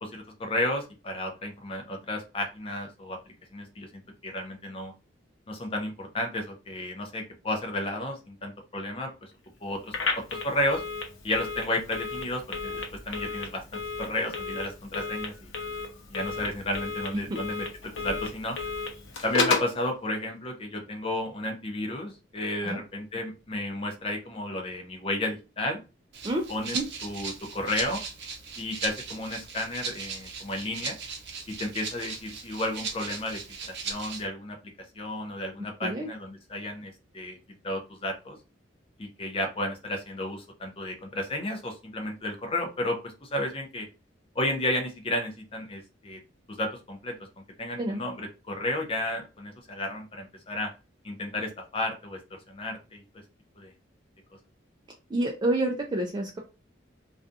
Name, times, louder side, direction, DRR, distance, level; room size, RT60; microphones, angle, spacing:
voice 1, 0.0-4.9 5.5-9.1 9.6-10.0 10.4-10.8 11.2-15.5 16.1-17.7 18.0-18.6 19.2-25.8 26.5-26.8 27.0-28.0 28.6-31.0 31.5-34.6 35.0-37.4 37.6-38.4 39.0-43.9 44.4-46.2 46.5-47.1 47.6-50.7 51.0-52.2 52.5-53.0 53.6-53.7, left 1 dB, 30° left, 3 dB, 0.6 m, -32 dB
Telephone, 9.9-19.8, left 4 dB, 85° left, 0.7 m, -33 dB
Rattle (instrument), 26.1-34.2, right 5 dB, 60° right, 0.6 m, -38 dB
voice 2, 55.1-56.4, right 1 dB, 25° right, 0 dB, 0.3 m, -28 dB
2.4 x 2.3 x 2.5 m, 0.30 s
head